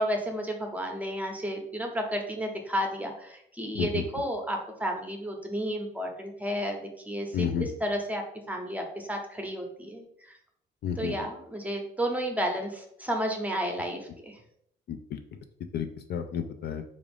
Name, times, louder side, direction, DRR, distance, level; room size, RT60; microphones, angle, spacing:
voice 1, 0.0-10.0 11.0-14.4, equal, 5° right, 2 dB, 0.7 m, -32 dB
voice 2, 7.3-7.7 10.8-11.1 14.9-15.2 15.7-16.8, left 8 dB, 55° left, 6 dB, 0.4 m, -31 dB
3.6 x 2.5 x 3.4 m, 0.71 s
cardioid pair, 90°, 20 cm